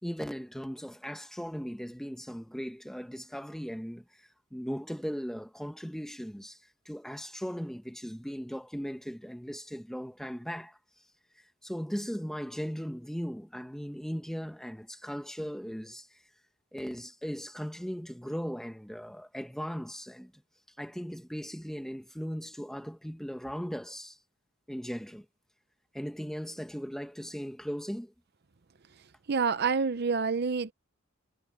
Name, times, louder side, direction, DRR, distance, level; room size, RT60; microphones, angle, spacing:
voice 1, 0.0-10.8 11.6-16.1 16.7-20.3 20.8-24.2 24.7-25.2 25.9-28.1, equal, ahead, 1.7 m, -38 dB
voice 2, 29.3-30.7, right 5 dB, 55° right, 0.7 m, -27 dB
head